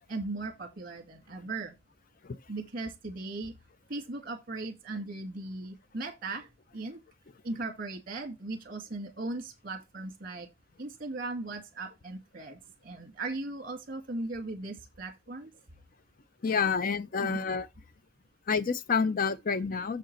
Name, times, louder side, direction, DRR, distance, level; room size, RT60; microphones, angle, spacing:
voice 1, 0.1-1.7 2.5-3.6 3.9-7.0 7.4-10.5 10.8-15.5 17.2-17.5, right 2 dB, 50° right, 2.1 m, -38 dB
voice 2, 16.4-17.7 18.5-20.0, left 5 dB, 45° left, 0.5 m, -28 dB
6.9 x 6.5 x 4.3 m
head